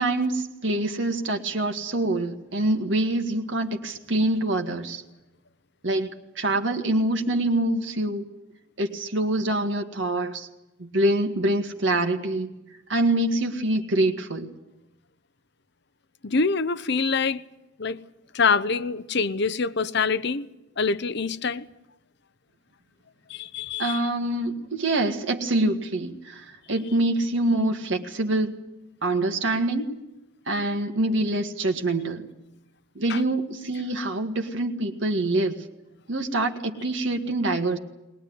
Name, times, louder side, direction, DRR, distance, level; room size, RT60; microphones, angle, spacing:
voice 1, 0.0-5.0 5.8-6.1 6.4-8.2 8.8-10.5 10.8-12.5 12.9-14.5 23.8-28.6 29.0-30.0 30.5-32.3 33.0-35.7 36.1-37.8, right 2 dB, 65° right, 1.9 m, -25 dB
voice 2, 16.2-17.4 17.8-18.0 18.3-20.5 20.8-21.6 23.3-24.0 33.1-33.2, left 4 dB, 60° left, 0.9 m, -25 dB
21.5 x 20.0 x 9.6 m
head